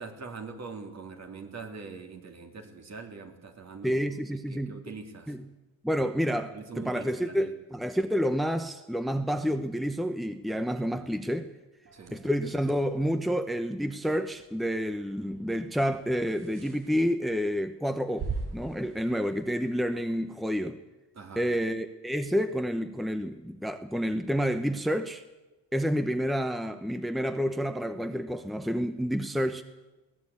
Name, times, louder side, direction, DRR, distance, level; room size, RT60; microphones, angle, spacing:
voice 1, 0.0-4.0 4.5-5.3 6.5-7.5 11.9-12.2 21.1-21.5, right 4 dB, 50° right, 3.2 m, -43 dB
voice 2, 3.8-4.8 5.3-5.5 5.8-11.5 12.1-20.8 21.4-25.2 25.7-29.6, equal, ahead, 0.9 m, -29 dB
sound 1, 11.9-20.2, right 4 dB, 70° right, 5.2 m, -43 dB
22.0 x 17.5 x 8.6 m
wide cardioid pair, 150°, 34 cm